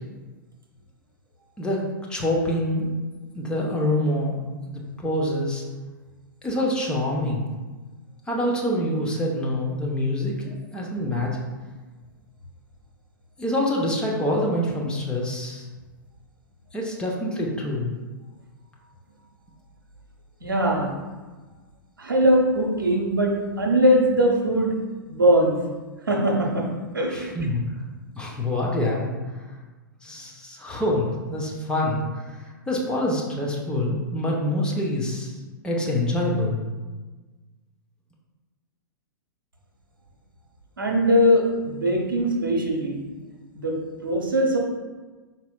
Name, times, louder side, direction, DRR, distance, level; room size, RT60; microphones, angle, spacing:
voice 1, 1.6-2.9 3.3-4.4 4.7-5.6 6.4-7.5 8.3-11.4 13.4-15.7 16.7-17.9 27.1-27.6 28.1-29.1 30.0-35.4 35.6-36.6, left 1 dB, 10° left, -3 dB, 0.6 m, -26 dB
voice 2, 20.4-20.9 22.0-24.7 25.1-25.6 26.1-26.6 26.9-27.3 40.8-43.0 43.5-43.7 44.0-44.6, equal, 80° right, 0 dB, 0.8 m, -21 dB
4.9 x 4.1 x 2.3 m, 1.3 s
figure-of-eight pair, 105°, 11 cm